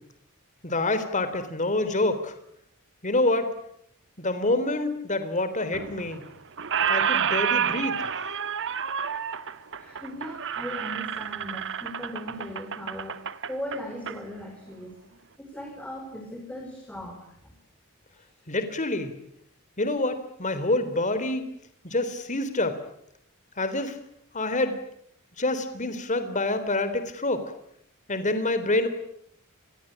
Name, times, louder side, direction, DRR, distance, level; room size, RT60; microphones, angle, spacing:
voice 1, 0.6-2.3 3.0-3.5 4.2-6.2 6.9-8.1 18.5-19.1 19.8-21.4 21.8-22.8 23.6-24.0 24.3-24.8 25.4-27.5 28.1-28.9, left 2 dB, 35° left, 11 dB, 3.6 m, -27 dB
Squeak, 5.7-6.3 6.6-14.2, right 8 dB, 60° right, 1.4 m, -29 dB
voice 2, 9.8-14.9 15.4-17.5, equal, 5° left, 3 dB, 4.6 m, -38 dB
28.0 x 21.5 x 8.9 m, 0.71 s
head